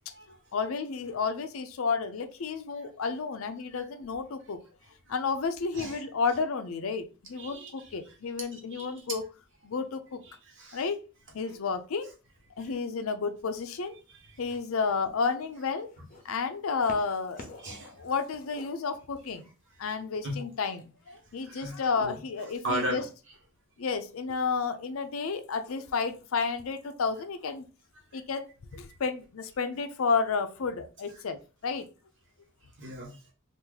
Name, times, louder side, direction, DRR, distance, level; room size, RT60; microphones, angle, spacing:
voice 1, 0.5-4.6 5.1-9.2 9.6-10.2 10.7-11.0 11.3-12.1 12.6-14.0 14.4-15.9 16.2-17.5 18.0-19.5 19.8-23.0 23.8-27.7 28.1-31.8, left 5 dB, 75° left, 8 dB, 0.5 m, -31 dB
voice 2, 7.4-8.0 8.5-8.9 10.3-10.8 14.1-14.4 17.6-18.0 20.2-20.4 21.4-22.1 22.6-23.0 28.1-28.2 32.8-33.2, right 1 dB, 60° right, -1 dB, 1.3 m, -37 dB
sound 1, 13.8-14.1 14.9-16.2 16.8-17.8 18.1-19.4 20.3-20.4, left 2 dB, 40° left, 0.7 m, -48 dB
2.8 x 2.5 x 3.8 m, 0.33 s
head